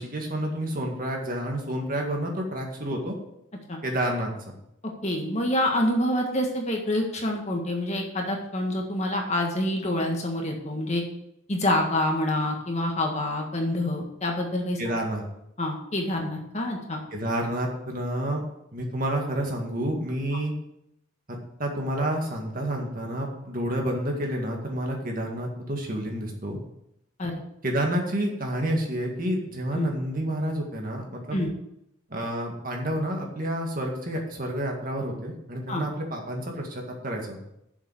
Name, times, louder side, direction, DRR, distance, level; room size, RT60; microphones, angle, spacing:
voice 1, 0.0-3.1 3.8-4.3 14.8-15.2 17.1-18.4 18.7-20.5 21.3-26.6 27.6-31.4 32.1-37.4, right 1 dB, 40° right, 1 dB, 2.0 m, -29 dB
voice 2, 5.0-11.0 11.5-14.8 15.6-17.0 27.2-27.4 29.7-29.9 31.3-31.5 35.7-35.8, left 1 dB, 35° left, 1 dB, 1.6 m, -27 dB
7.3 x 6.9 x 7.8 m, 0.80 s
head